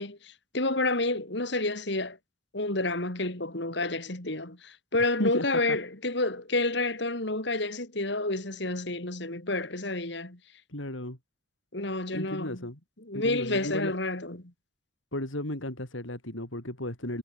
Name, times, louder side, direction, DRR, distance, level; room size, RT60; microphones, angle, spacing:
voice 1, 0.0-2.2 2.5-10.4 11.7-12.7 13.0-14.5, left 2 dB, 65° left, 3.5 m, -29 dB
voice 2, 5.2-5.8 10.7-11.2 12.1-12.8 13.1-14.0 15.1-17.2, left 1 dB, 85° left, 4.9 m, -34 dB
head